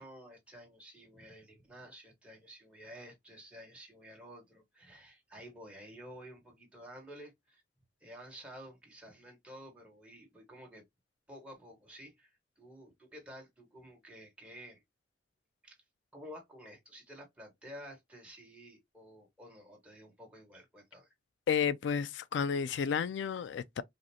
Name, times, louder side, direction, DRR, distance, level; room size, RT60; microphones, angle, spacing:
voice 1, 0.0-7.6 8.0-10.8 11.3-12.3 12.6-14.8 15.6-15.8 16.1-21.1, equal, 5° right, 1.3 m, -51 dB
voice 2, 21.5-23.8, left 7 dB, 90° left, 0.3 m, -32 dB
5.0 x 2.0 x 2.7 m
head